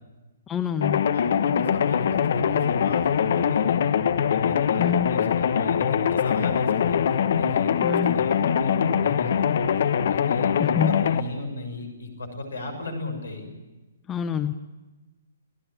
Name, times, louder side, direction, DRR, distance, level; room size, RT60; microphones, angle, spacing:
voice 1, 0.5-1.1 4.8-5.2 7.8-8.2 10.6-10.9 14.1-14.5, left 8 dB, 15° left, 10 dB, 0.8 m, -27 dB
sound 1, 0.8-11.2, left 8 dB, 55° left, 1.3 m, -23 dB
voice 2, 1.1-3.8 4.3-7.0 7.3-9.5 9.7-13.5, left 2 dB, 75° left, 6 dB, 6.8 m, -35 dB
29.0 x 16.5 x 9.1 m, 1.2 s
figure-of-eight pair, 125°, 0 cm